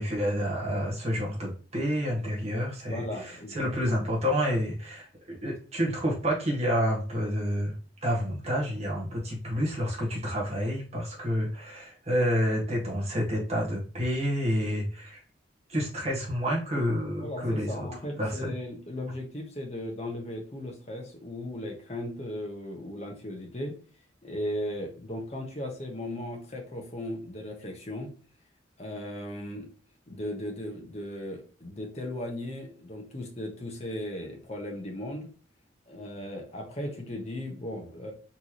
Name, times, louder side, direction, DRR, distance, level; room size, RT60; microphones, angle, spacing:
voice 1, 0.0-7.7 8.0-15.2 15.7-17.9 18.2-18.6, equal, 35° right, -4 dB, 1.6 m, -29 dB
voice 2, 2.9-3.9 17.2-23.8 24.2-28.1 28.8-29.7 30.1-35.3 35.9-38.1, left 1 dB, 35° left, 1 dB, 1.1 m, -37 dB
4.2 x 3.3 x 3.0 m, 0.39 s
head